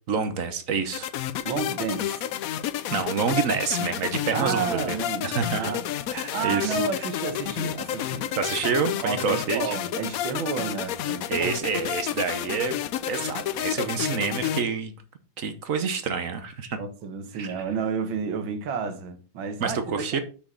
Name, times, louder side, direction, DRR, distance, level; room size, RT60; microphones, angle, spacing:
voice 1, 0.1-1.1 2.9-5.0 5.2-5.7 6.1-6.8 8.4-9.7 11.3-12.8 13.1-14.9 15.4-16.8 17.3-17.6 19.6-20.2, right 5 dB, 55° right, 1.1 m, -27 dB
sound 1, 0.9-14.6, left 11 dB, 75° left, 0.8 m, -30 dB
voice 2, 1.4-2.2 4.3-5.8 6.3-8.3 9.0-11.6 16.8-20.2, right 6 dB, 85° right, 1.8 m, -31 dB
6.2 x 6.1 x 4.5 m
omnidirectional pair, 2.1 m